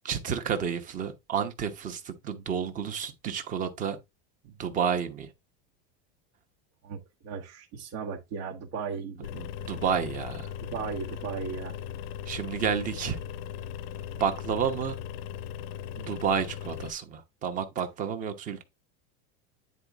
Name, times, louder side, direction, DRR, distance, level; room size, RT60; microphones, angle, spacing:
voice 1, 0.0-4.0 4.4-5.3 9.3-10.5 12.3-13.2 14.2-15.0 16.0-18.6, right 7 dB, 25° right, 1.1 m, -30 dB
voice 2, 6.8-9.3 10.6-11.8, right 6 dB, 60° right, 1.6 m, -36 dB
sound 1, 9.2-16.9, left 9 dB, 70° left, 0.7 m, -38 dB
9.8 x 4.1 x 3.6 m
supercardioid pair, 170°, 30 cm